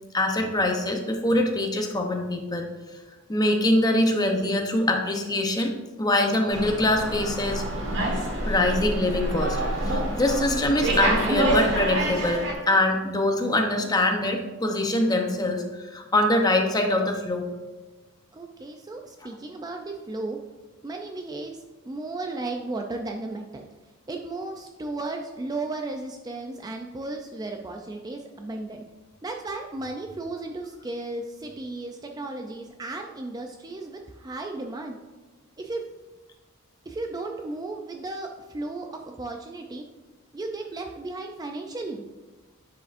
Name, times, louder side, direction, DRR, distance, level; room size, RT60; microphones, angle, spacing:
voice 1, 0.1-2.7 3.3-5.7 6.0-7.6 8.4-17.5, left 1 dB, 20° left, 3 dB, 0.7 m, -24 dB
Slam, 6.5-12.5, right 1 dB, 55° right, 1.6 m, -27 dB
voice 2, 18.3-20.4 20.8-23.6 24.1-28.8 29.2-35.0 35.6-35.9 36.9-39.8 40.3-42.0, right 2 dB, 20° right, 3 dB, 0.4 m, -35 dB
10.0 x 5.1 x 2.5 m, 1.2 s
head